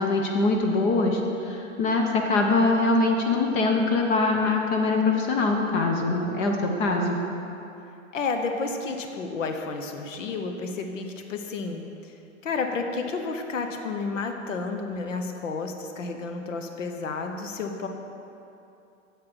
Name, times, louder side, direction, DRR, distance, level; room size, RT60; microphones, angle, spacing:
voice 1, 0.0-7.2, left 3 dB, 40° left, 2 dB, 1.2 m, -23 dB
voice 2, 8.1-12.2 12.4-17.9, left 4 dB, 70° left, 5 dB, 1.1 m, -31 dB
9.6 x 7.6 x 6.2 m, 2.8 s
figure-of-eight pair, 105°, 39 cm